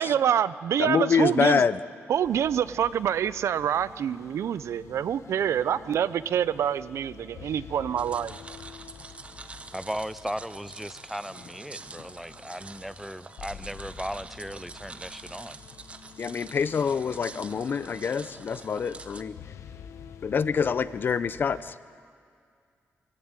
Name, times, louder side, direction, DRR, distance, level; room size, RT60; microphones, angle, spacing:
voice 1, 0.0-1.6 2.1-8.4, right 9 dB, 80° right, 17 dB, 0.5 m, -26 dB
voice 2, 0.8-1.8 16.2-19.4 20.2-21.7, left 6 dB, 45° left, 15 dB, 0.6 m, -26 dB
sound 1, 2.2-21.8, left 7 dB, 85° left, 1.0 m, -48 dB
sound 2, 8.0-19.2, right 3 dB, 25° right, 0.8 m, -46 dB
voice 3, 9.7-15.6, equal, ahead, 16 dB, 0.5 m, -37 dB
24.0 x 16.5 x 8.9 m, 2.3 s
wide cardioid pair, 165°, 5 cm